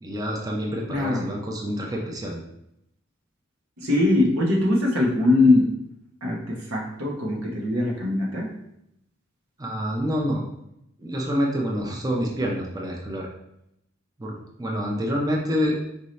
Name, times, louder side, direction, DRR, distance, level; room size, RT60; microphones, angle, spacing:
voice 1, 0.0-2.4 9.6-10.5 11.0-13.3 14.2-15.8, equal, 20° right, -1 dB, 0.5 m, -27 dB
voice 2, 0.9-1.3 3.8-5.7 6.2-8.5, left 2 dB, 85° right, -2 dB, 1.0 m, -21 dB
4.6 x 2.7 x 3.1 m, 0.80 s
head